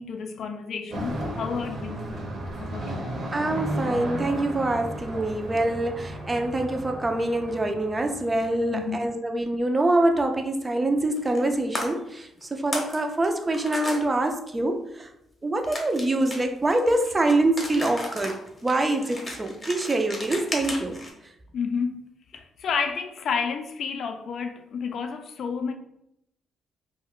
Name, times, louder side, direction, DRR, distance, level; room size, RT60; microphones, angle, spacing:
voice 1, 0.0-2.2 2.6-3.1 8.7-9.2 21.5-22.0 22.3-25.7, left 6 dB, 60° left, 7 dB, 0.3 m, -31 dB
sound 1, 0.9-8.9, right 1 dB, 55° right, 0.7 m, -34 dB
voice 2, 3.3-15.1 15.4-21.0, right 2 dB, 20° right, 5 dB, 0.4 m, -25 dB
sound 2, 11.1-11.5 11.7-11.9 12.4-13.0 13.2-14.0 15.7-21.1, left 1 dB, 30° left, 0.8 m, -35 dB
2.4 x 2.1 x 3.6 m, 0.80 s
cardioid pair, 90°, 0 cm